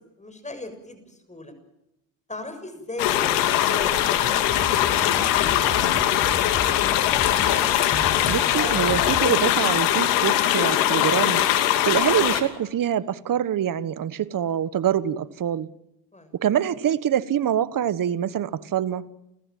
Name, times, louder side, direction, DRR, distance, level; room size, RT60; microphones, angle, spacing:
voice 1, 0.2-1.5 2.3-4.9 5.2-5.9 16.1-16.3, left 2 dB, 15° left, 7.0 m, -38 dB
sound 1, 3.0-12.4, left 12 dB, 80° left, 2.8 m, -21 dB
sound 2, 4.2-9.3, left 5 dB, 40° left, 5.4 m, -33 dB
voice 2, 8.3-11.4 11.9-15.7 16.3-19.0, right 10 dB, 40° right, 1.4 m, -25 dB
30.0 x 14.5 x 9.3 m
supercardioid pair, 85°, 50 cm